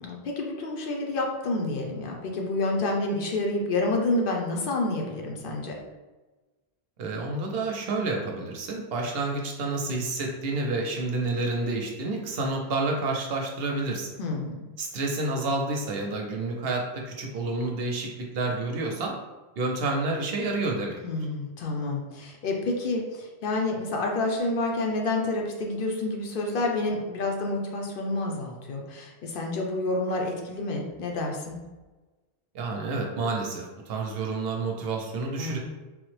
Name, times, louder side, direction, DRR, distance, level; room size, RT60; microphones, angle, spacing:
voice 1, 0.0-5.8 14.2-14.7 21.0-31.6 35.4-35.6, left 2 dB, 65° left, 0 dB, 0.7 m, -29 dB
voice 2, 7.0-14.1 14.8-19.1 19.6-21.0 32.5-35.6, right 3 dB, 75° right, 1 dB, 0.8 m, -29 dB
3.3 x 2.0 x 3.1 m, 1.2 s
omnidirectional pair, 1.0 m